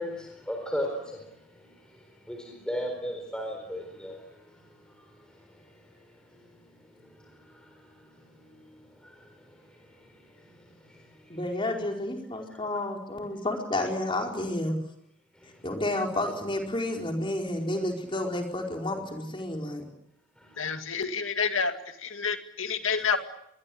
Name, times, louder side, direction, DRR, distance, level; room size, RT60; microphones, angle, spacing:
voice 1, 0.0-11.4 15.4-15.7 20.4-20.8 22.9-23.1, equal, 5° left, 2 dB, 4.3 m, -39 dB
voice 2, 11.3-14.7 15.6-19.8, left 1 dB, 25° left, 2 dB, 4.7 m, -30 dB
voice 3, 20.6-21.7 22.0-23.2, left 5 dB, 85° left, 7 dB, 2.2 m, -28 dB
26.0 x 22.0 x 8.7 m, 0.77 s
head